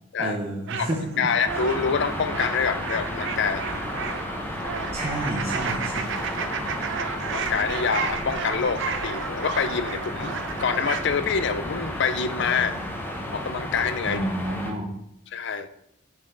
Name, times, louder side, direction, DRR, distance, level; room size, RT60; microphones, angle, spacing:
voice 1, 0.2-1.3 4.9-6.1 14.0-14.9, right 1 dB, 30° right, -3 dB, 0.8 m, -30 dB
sound 1, 0.7-11.1, right 6 dB, 60° right, 0.5 m, -33 dB
voice 2, 1.2-3.6 7.3-12.8 13.3-14.2 15.3-15.7, left 6 dB, 55° left, 12 dB, 0.4 m, -26 dB
sound 2, 1.4-14.7, left 1 dB, 10° left, 0.9 m, -32 dB
6.9 x 4.4 x 3.8 m, 0.75 s
head